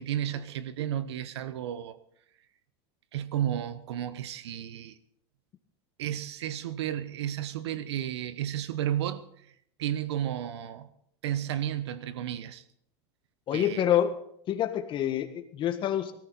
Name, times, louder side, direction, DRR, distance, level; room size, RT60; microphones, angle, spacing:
voice 1, 0.0-2.0 3.1-5.0 6.0-9.2 9.8-10.9 11.2-12.6 13.5-13.8, right 11 dB, 90° right, 1.0 m, -32 dB
voice 2, 13.5-14.1 14.5-16.1, left 10 dB, 35° left, 1.6 m, -27 dB
18.5 x 13.5 x 4.1 m
supercardioid pair, 130°, 14 cm